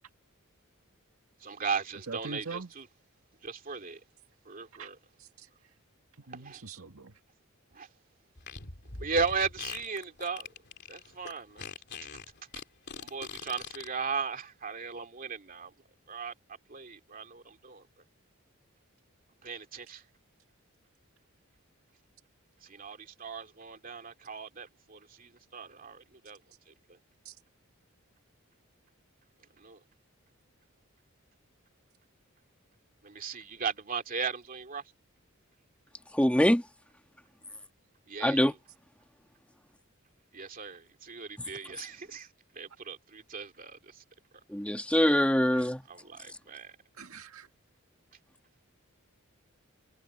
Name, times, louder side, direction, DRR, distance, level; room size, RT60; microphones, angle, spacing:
voice 1, 1.4-2.9 3.4-4.0 4.4-5.0 6.3-6.6 7.7-7.9 8.9-10.5 10.9-11.7 12.9-15.7 16.1-16.3 16.7-17.8 19.4-20.0 22.6-26.4 26.7-26.8 29.6-29.8 33.0-34.8 38.1-38.5 40.3-42.3 42.5-44.0 45.9-46.7, right 5 dB, 40° right, 2.5 m, -37 dB
voice 2, 2.1-2.7 4.8-4.9 5.2-5.5 6.3-7.1 27.3-27.4 45.5-45.6 47.0-47.5, right 4 dB, 90° right, 1.9 m, -42 dB
Fart, 8.4-13.9, left 5 dB, 55° left, 2.9 m, -42 dB
voice 3, 36.1-36.6 38.2-38.5 44.5-45.8, equal, 5° left, 1.5 m, -24 dB
head